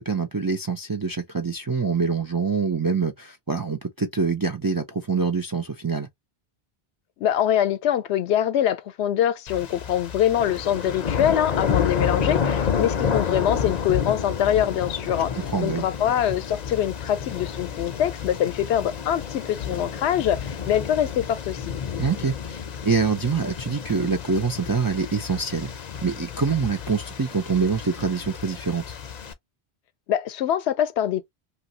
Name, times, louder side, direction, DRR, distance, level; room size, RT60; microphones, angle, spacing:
voice 1, 0.0-6.1 15.5-15.8 22.0-25.7 26.0-29.0, right 5 dB, 35° right, 0.4 m, -25 dB
voice 2, 7.2-15.3 15.6-21.8 30.1-31.3, left 10 dB, 85° left, 0.8 m, -24 dB
sound 1, 9.5-29.3, left 7 dB, 50° left, 0.6 m, -30 dB
3.0 x 2.6 x 2.7 m
omnidirectional pair, 1.1 m